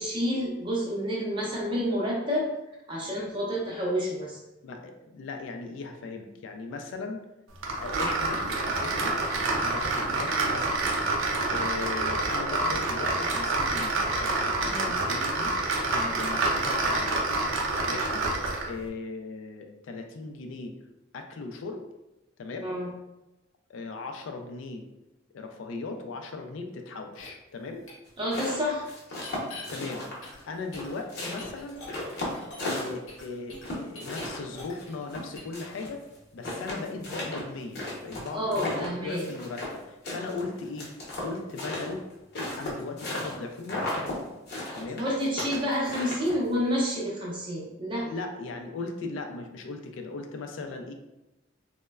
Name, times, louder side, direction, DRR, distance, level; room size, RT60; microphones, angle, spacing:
voice 1, 0.0-2.5 2.9-4.4 14.6-15.0 22.6-22.9 28.2-28.9 38.3-39.2 44.7-48.1, equal, 25° right, -3 dB, 0.6 m, -29 dB
voice 2, 4.6-7.2 7.8-8.4 8.8-9.2 9.6-10.9 11.5-14.0 14.2-15.6 15.9-17.1 17.9-18.2 18.7-20.8 21.1-21.9 22.4-22.8 23.7-24.8 25.3-27.9 29.7-30.1 30.4-31.8 32.7-36.0 36.3-40.9 41.2-42.0 42.4-44.1 44.8-45.0 48.0-50.9, left 3 dB, 70° left, 5 dB, 0.3 m, -38 dB
sound 1, 7.6-18.7, right 2 dB, 80° right, 0.5 m, -27 dB
sound 2, 27.1-27.3 27.9-28.0 29.1-29.6 30.2-32.8 33.1-35.1 35.3-35.6, left 3 dB, 90° left, 0.8 m, -44 dB
sound 3, 28.1-30.4 30.7-33.2 33.6-35.9 36.1-36.2 36.4-39.8 40.0-43.4 43.6-44.2 44.5-46.5, left 1 dB, 55° left, 0.8 m, -35 dB
3.0 x 2.1 x 2.3 m, 0.96 s
head